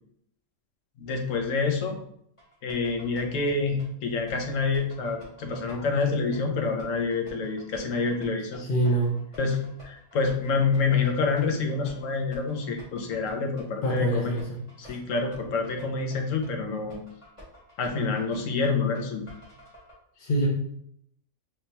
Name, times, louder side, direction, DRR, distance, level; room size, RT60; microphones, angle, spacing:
voice 1, 1.0-2.0 2.6-8.6 9.4-14.4 14.8-17.0 17.8-19.3, left 4 dB, 65° left, 3 dB, 1.1 m, -27 dB
sound 1, 2.4-19.9, right 3 dB, 20° left, 1.8 m, -48 dB
voice 2, 8.6-9.1 13.8-15.0 20.2-20.5, right 1 dB, 45° left, -2 dB, 0.8 m, -26 dB
4.8 x 3.3 x 2.8 m, 0.69 s
omnidirectional pair, 1.5 m